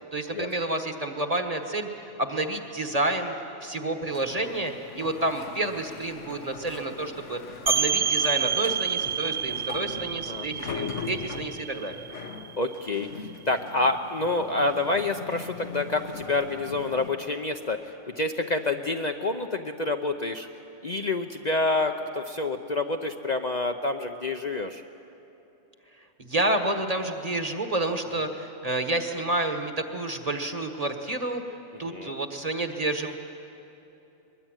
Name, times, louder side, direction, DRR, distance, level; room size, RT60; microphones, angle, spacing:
voice 1, 0.1-3.3 3.6-7.4 7.6-12.0 26.2-31.4 31.8-33.1, right 2 dB, 30° right, 5 dB, 1.6 m, -29 dB
sound 1, 4.1-17.1, left 6 dB, 75° left, 1.5 m, -41 dB
sound 2, 7.7-13.1, right 7 dB, 50° right, 1.5 m, -29 dB
voice 2, 12.6-17.8 18.1-20.5 20.8-24.8 31.9-32.2, left 2 dB, 40° left, 5 dB, 0.8 m, -28 dB
22.5 x 21.5 x 9.1 m, 3.0 s
omnidirectional pair, 1.2 m